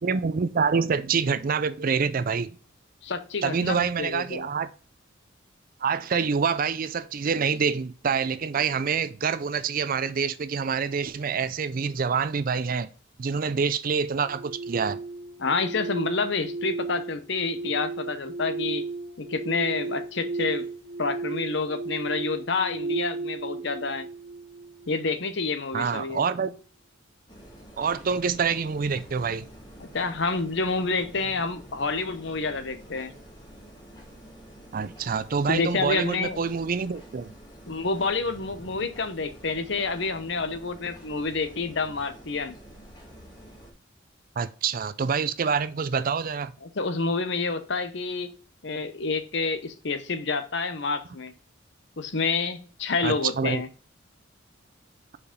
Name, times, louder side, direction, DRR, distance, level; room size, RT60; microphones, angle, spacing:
voice 1, 0.0-2.5 3.4-4.7 5.8-12.9 13.2-15.0 25.7-26.6 27.8-29.5 34.7-37.3 44.4-46.5 53.0-53.6, right 5 dB, 45° right, 0.4 m, -26 dB
voice 2, 3.0-4.5 15.4-18.8 19.2-20.6 21.0-24.1 24.9-26.3 29.8-33.1 35.5-36.4 37.7-42.5 46.6-48.3 48.6-51.3 52.0-53.7, left 4 dB, 65° left, 0.9 m, -28 dB
sound 1, 14.2-25.2, right 3 dB, 65° right, 1.5 m, -34 dB
sound 2, 27.3-43.7, equal, 20° left, 1.6 m, -48 dB
5.0 x 4.9 x 5.1 m
head